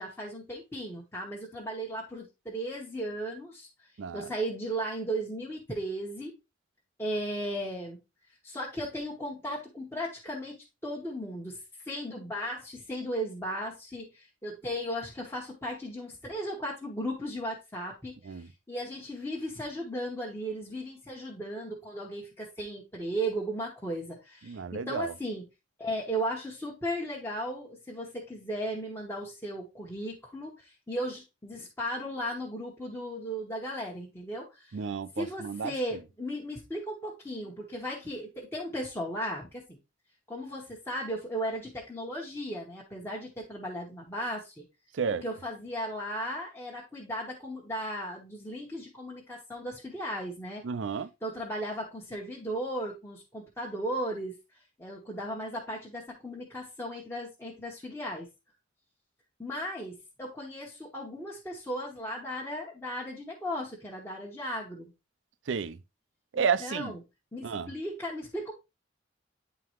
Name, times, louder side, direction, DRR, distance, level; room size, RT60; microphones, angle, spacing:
voice 1, 0.0-3.7 4.1-6.3 7.0-8.0 8.4-10.6 10.8-11.6 11.8-25.5 25.8-34.8 35.1-39.8 40.3-44.7 45.2-50.6 51.2-54.4 54.8-58.3 59.4-64.9 66.3-67.0 67.3-68.5, equal, 15° left, 1.1 m, -36 dB
voice 2, 4.0-4.3 18.3-18.5 24.4-25.1 34.7-35.7 44.9-45.2 50.6-51.1 65.5-65.8 66.3-66.9 67.4-67.7, right 6 dB, 90° right, 0.5 m, -31 dB
9.5 x 3.8 x 3.0 m
head